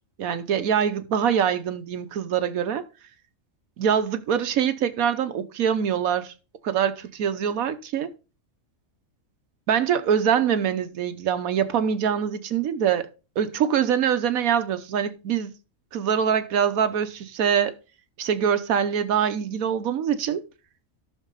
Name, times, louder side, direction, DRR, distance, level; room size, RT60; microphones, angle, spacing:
voice 1, 0.2-2.8 3.8-6.3 6.6-8.1 9.7-13.1 13.4-15.5 15.9-17.8 18.2-20.4, right 8 dB, 90° right, 1.3 m, -24 dB
13.0 x 6.3 x 4.0 m
omnidirectional pair, 1.4 m